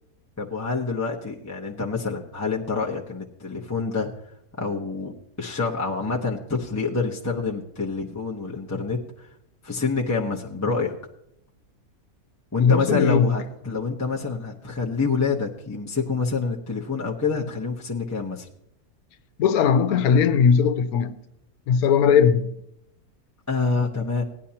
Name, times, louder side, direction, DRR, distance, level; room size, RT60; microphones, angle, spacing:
voice 1, 0.4-4.1 4.6-9.3 9.6-10.9 12.5-18.5 23.5-24.2, left 4 dB, 15° left, 0.7 m, -27 dB
voice 2, 12.6-13.3 19.4-21.2 21.7-22.5, left 7 dB, 80° left, 1.2 m, -19 dB
17.5 x 10.0 x 2.8 m
omnidirectional pair, 1.6 m